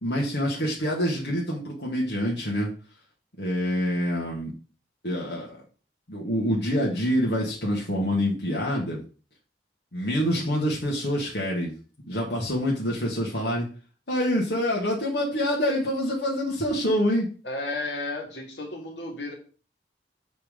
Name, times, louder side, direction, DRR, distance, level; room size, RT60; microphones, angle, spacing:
voice 1, 0.0-2.7 3.4-4.5 5.0-5.6 6.1-9.0 9.9-11.7 12.1-13.7 14.1-17.3, equal, 70° left, -3 dB, 1.8 m, -26 dB
voice 2, 17.4-19.3, left 2 dB, 85° left, 1 dB, 2.3 m, -33 dB
7.1 x 4.4 x 5.1 m, 0.37 s
head